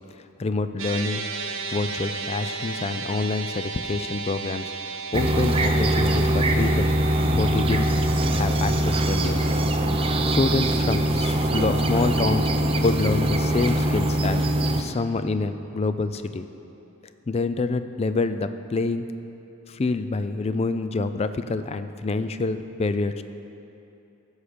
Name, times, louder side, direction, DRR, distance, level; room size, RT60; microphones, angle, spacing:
voice 1, 0.4-1.2 1.7-6.9 7.3-7.9 8.3-9.5 10.3-12.5 12.8-14.4 14.8-16.4 17.3-19.1 19.7-23.2, left 3 dB, 30° left, 11 dB, 0.4 m, -27 dB
sound 1, 0.8-13.2, right 4 dB, 65° right, 1.0 m, -36 dB
sound 2, 5.1-14.8, right 1 dB, 25° right, 0.5 m, -22 dB
15.0 x 6.4 x 5.1 m, 2.8 s
head